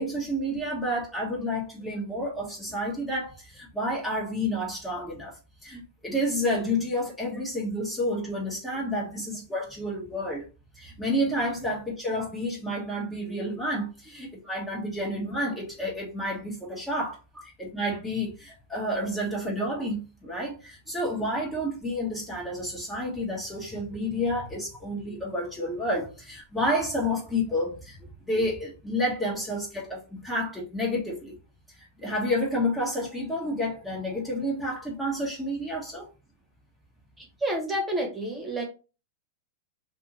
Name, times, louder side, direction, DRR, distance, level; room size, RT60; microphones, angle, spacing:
voice 1, 0.0-10.4 10.7-28.0 28.3-31.3 31.7-36.1, equal, 10° left, 1.0 m, -30 dB
voice 2, 37.2-38.6, right 1 dB, 10° right, 1.1 m, -29 dB
2.6 x 2.5 x 2.9 m
hypercardioid pair, 110°, 0 cm